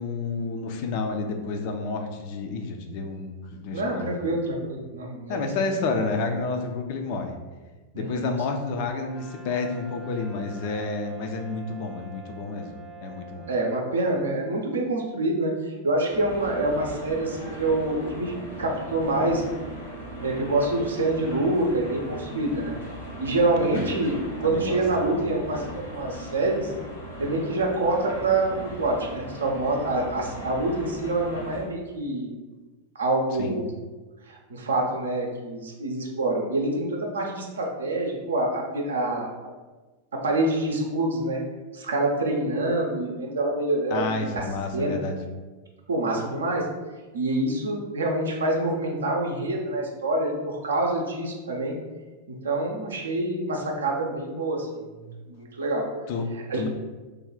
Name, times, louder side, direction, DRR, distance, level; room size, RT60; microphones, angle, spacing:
voice 1, 0.0-4.4 5.3-7.4 7.9-12.7 13.0-13.5 23.6-23.9 24.4-24.8 25.1-25.2 33.4-33.6 43.9-45.2 56.1-56.7, left 3 dB, 45° left, 4 dB, 0.4 m, -30 dB
voice 2, 3.7-5.5 7.9-8.3 13.5-19.4 20.2-22.8 23.2-24.1 24.4-26.7 27.2-32.3 32.9-33.7 34.3-39.5 40.1-41.4 41.7-44.4 44.7-45.0 45.9-46.7 47.1-51.8 52.4-54.7 54.9-55.9 56.3-56.6, right 2 dB, 70° right, 0 dB, 0.6 m, -26 dB
Brass instrument, 9.0-13.9, right 3 dB, 5° right, 0.5 m, -45 dB
sound 1, 16.1-31.6, right 1 dB, 70° left, 1.1 m, -38 dB
3.3 x 2.3 x 3.7 m, 1.3 s
figure-of-eight pair, 90°, 0 cm